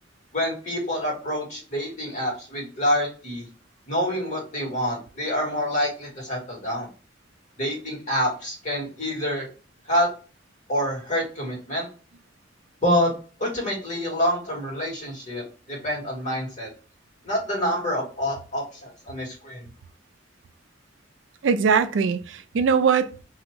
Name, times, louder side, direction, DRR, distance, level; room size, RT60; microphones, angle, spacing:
voice 1, 0.3-3.4 3.9-6.9 7.6-9.5 9.9-10.1 10.7-11.9 12.8-13.1 13.4-16.7 17.2-19.7, equal, 40° left, 1.7 m, -27 dB
voice 2, 21.4-23.2, right 6 dB, 75° right, 0.4 m, -21 dB
2.7 x 2.5 x 2.9 m
head